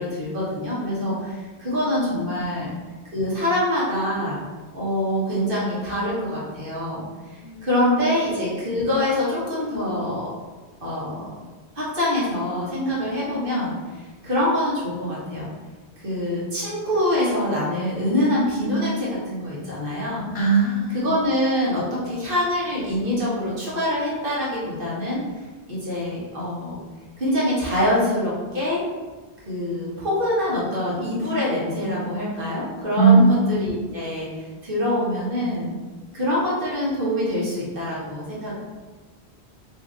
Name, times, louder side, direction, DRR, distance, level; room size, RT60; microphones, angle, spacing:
voice 1, 0.0-2.7 3.1-4.4 4.7-7.0 7.6-10.3 10.8-11.2 11.7-15.5 16.0-20.3 20.9-25.2 25.7-26.8 27.2-28.8 29.5-35.8 36.1-38.6, left 1 dB, 55° right, -7 dB, 1.3 m, -25 dB
voice 2, 20.3-21.1 32.9-33.8, right 4 dB, 55° left, -4 dB, 0.9 m, -19 dB
2.8 x 2.7 x 3.6 m, 1.3 s
omnidirectional pair, 1.1 m